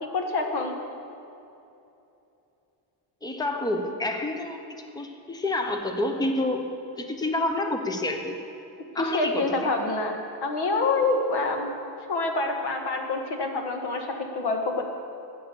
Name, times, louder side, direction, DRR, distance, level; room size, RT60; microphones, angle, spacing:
voice 1, 0.0-0.8 9.0-11.7 12.1-14.8, left 3 dB, 55° left, 4 dB, 1.7 m, -27 dB
voice 2, 3.2-4.6 4.9-8.4 8.9-9.7, left 2 dB, 10° left, 5 dB, 0.8 m, -28 dB
12.0 x 8.7 x 7.0 m, 2.8 s
cardioid pair, 140°, 46 cm